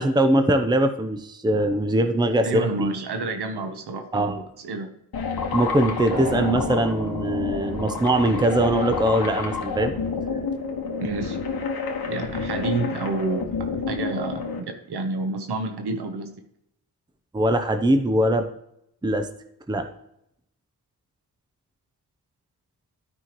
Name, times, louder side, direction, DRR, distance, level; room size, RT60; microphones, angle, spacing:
voice 1, 0.0-2.9 4.1-4.4 5.5-9.9 17.3-18.5 19.0-19.3 19.7-19.9, right 1 dB, 10° right, 8 dB, 0.6 m, -22 dB
voice 2, 2.4-4.9 11.0-11.4 12.1-16.4, right 3 dB, 85° right, 6 dB, 1.0 m, -29 dB
sound 1, 5.1-14.6, left 5 dB, 70° left, 1.4 m, -29 dB
sound 2, 6.1-13.2 13.5-13.6, right 3 dB, 65° right, 1.4 m, -39 dB
12.5 x 5.6 x 3.0 m, 0.77 s
wide cardioid pair, 100°, 38 cm